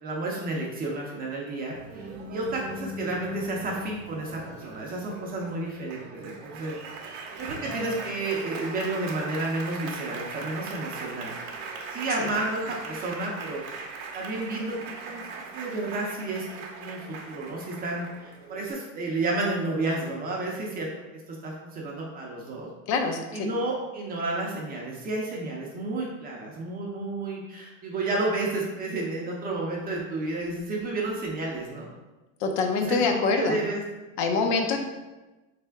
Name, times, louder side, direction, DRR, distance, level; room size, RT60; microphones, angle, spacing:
voice 1, 0.0-11.3 11.9-14.8 15.0-15.2 15.5-20.9 21.3-22.7 23.3-31.9 32.9-33.8 34.5-34.8, right 2 dB, 25° right, -2 dB, 0.6 m, -31 dB
Applause, 1.7-18.7, right 3 dB, 60° right, 0.7 m, -39 dB
voice 2, 22.9-23.5 32.4-33.6 34.2-34.8, left 4 dB, 45° left, 5 dB, 0.6 m, -25 dB
3.6 x 3.4 x 3.4 m, 1.1 s
supercardioid pair, 145°, 38 cm